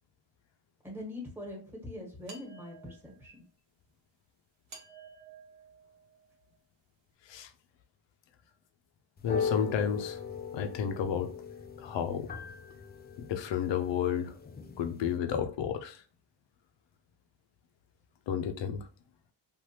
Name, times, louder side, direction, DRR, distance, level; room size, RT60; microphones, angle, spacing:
voice 1, 0.8-3.4, left 1 dB, 5° right, 1.4 m, -43 dB
sound 1, 2.3-3.4 4.7-6.6, right 4 dB, 70° right, 1.2 m, -53 dB
voice 2, 9.2-10.2 10.5-11.3 11.8-12.3 13.2-14.3 14.8-16.0 18.3-18.8, left 8 dB, 65° left, 0.7 m, -31 dB
sound 2, 9.2-15.2, left 7 dB, 25° left, 0.3 m, -38 dB
3.2 x 2.5 x 2.8 m
cardioid pair, 85°, 48 cm